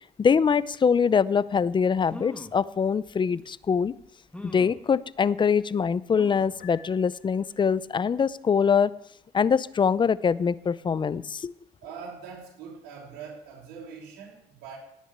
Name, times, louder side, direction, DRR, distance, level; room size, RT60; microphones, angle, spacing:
voice 1, 0.2-3.9 4.4-8.9 9.3-11.5, left 6 dB, 30° left, 0.6 m, -23 dB
sound 1, 2.1-2.6 3.4-3.5 4.3-4.8 6.1-6.6 7.1-7.2 7.5-7.6, left 1 dB, 5° left, 1.7 m, -42 dB
Piano, 6.6-7.8, left 11 dB, 65° left, 1.8 m, -51 dB
voice 2, 11.8-14.8, right 6 dB, 85° right, 4.8 m, -42 dB
17.5 x 6.3 x 9.5 m
cardioid pair, 110°, 17 cm